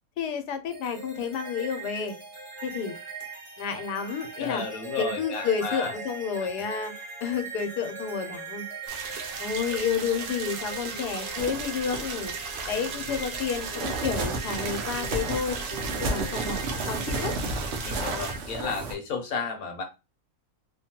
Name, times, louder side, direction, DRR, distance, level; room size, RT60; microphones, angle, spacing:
voice 1, 0.2-2.2 2.6-3.0 3.6-4.6 5.0-6.9 7.2-8.7 9.4-12.3 12.7-15.6 16.1-17.3, left 6 dB, 85° left, 1.2 m, -30 dB
sound 1, 0.7-18.4, right 3 dB, 25° right, 0.9 m, -40 dB
voice 2, 4.4-5.9 17.8-19.8, left 4 dB, 70° left, 1.1 m, -32 dB
sound 2, 8.9-18.3, right 5 dB, 75° right, 1.1 m, -37 dB
sound 3, 11.4-18.9, right 2 dB, 60° right, 0.7 m, -33 dB
2.9 x 2.2 x 2.8 m
omnidirectional pair, 1.7 m